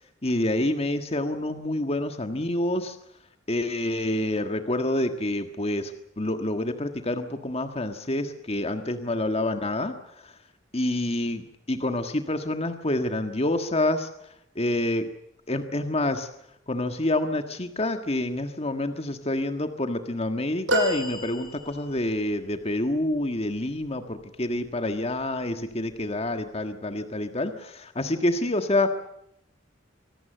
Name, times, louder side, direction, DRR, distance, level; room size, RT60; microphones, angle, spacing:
voice 1, 0.2-3.0 3.5-10.3 10.7-14.1 14.5-15.1 15.5-16.3 16.7-28.9, left 1 dB, 30° left, 7 dB, 1.6 m, -27 dB
sound 1, 20.7-22.1 24.5-24.7 26.0-26.1, right 2 dB, 80° right, 6.5 m, -29 dB
25.0 x 18.5 x 7.9 m, 0.78 s
head